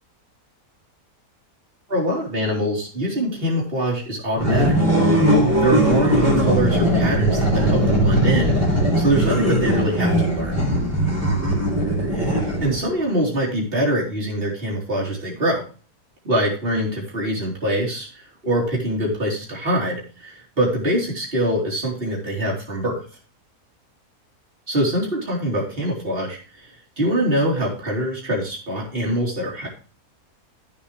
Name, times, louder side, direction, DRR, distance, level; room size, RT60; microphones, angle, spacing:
voice 1, 1.9-4.7 5.3-5.4 5.6-10.6 12.1-15.6 16.2-23.0 24.7-26.7 27.0-29.7, right 1 dB, 35° right, -3 dB, 4.0 m, -24 dB
sound 1, 4.4-12.9, equal, 10° right, 3.8 m, -19 dB
14.0 x 7.1 x 3.3 m, 0.38 s
omnidirectional pair, 1.6 m